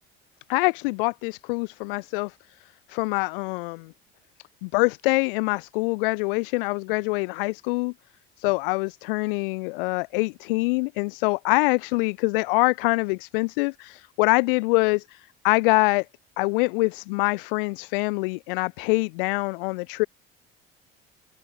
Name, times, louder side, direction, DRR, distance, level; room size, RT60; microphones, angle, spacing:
voice 1, 0.5-2.3 2.9-3.9 4.6-7.9 8.4-16.0 16.4-20.1, left 27 dB, 65° left, 1.5 m, -24 dB
open air
figure-of-eight pair, 60°, 29 cm